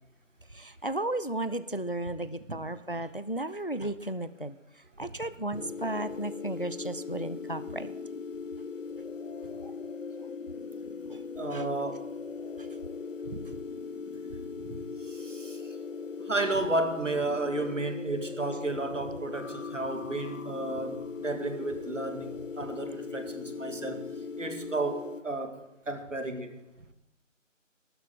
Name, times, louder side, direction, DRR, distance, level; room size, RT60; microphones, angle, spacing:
voice 1, 0.5-4.6 5.0-7.9 9.6-9.7 11.1-11.2 11.5-11.6, right 1 dB, 45° left, 14 dB, 0.4 m, -34 dB
sound 1, 5.5-25.2, left 5 dB, 75° left, 0.9 m, -39 dB
voice 2, 11.4-12.0 13.3-13.4 14.6-15.8 16.2-24.1 24.4-26.6, right 2 dB, 70° right, 6 dB, 2.1 m, -33 dB
13.5 x 12.5 x 3.7 m, 0.94 s
figure-of-eight pair, 175°, 39 cm